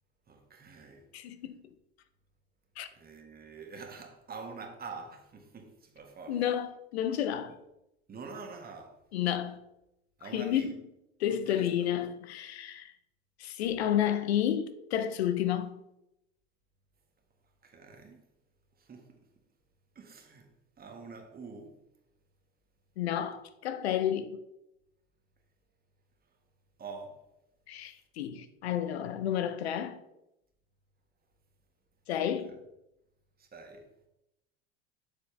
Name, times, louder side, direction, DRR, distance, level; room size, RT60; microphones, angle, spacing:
voice 1, 0.3-1.1 2.9-6.4 8.1-9.0 10.2-10.7 11.5-11.9 17.6-18.2 18.8-19.2 20.0-20.5 20.8-21.8 26.8-27.2 32.4-32.6 33.4-33.9, right 4 dB, 30° right, 1.6 m, -46 dB
voice 2, 1.1-1.6 2.8-2.9 6.3-7.5 9.1-9.6 10.3-10.7 11.2-12.9 13.4-15.8 23.0-24.4 27.7-30.0 32.1-32.5, left 10 dB, 85° left, 0.7 m, -31 dB
7.0 x 6.9 x 3.3 m
hypercardioid pair, 85°, 31 cm